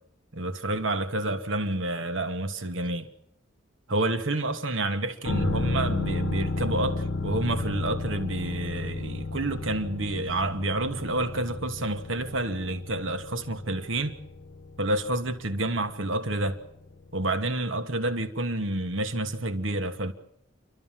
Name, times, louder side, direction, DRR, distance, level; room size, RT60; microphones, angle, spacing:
voice 1, 0.3-3.1 3.9-14.1 14.8-16.6 17.1-20.1, right 2 dB, 80° right, 1.5 m, -29 dB
sound 1, 5.2-16.8 17.1-17.2, left 2 dB, 60° left, 0.8 m, -33 dB
29.0 x 12.5 x 7.5 m
head